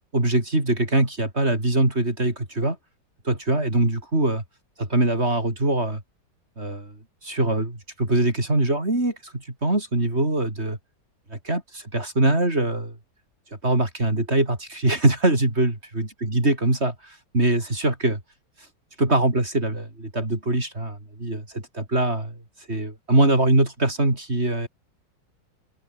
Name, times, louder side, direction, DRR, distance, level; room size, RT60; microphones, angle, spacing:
voice 1, 0.1-2.8 3.3-4.4 4.8-6.0 6.6-7.0 7.2-10.8 11.3-13.0 13.6-18.2 19.0-22.4 22.7-24.7, right 2 dB, 35° right, 5.3 m, -23 dB
open air
omnidirectional pair, 2.0 m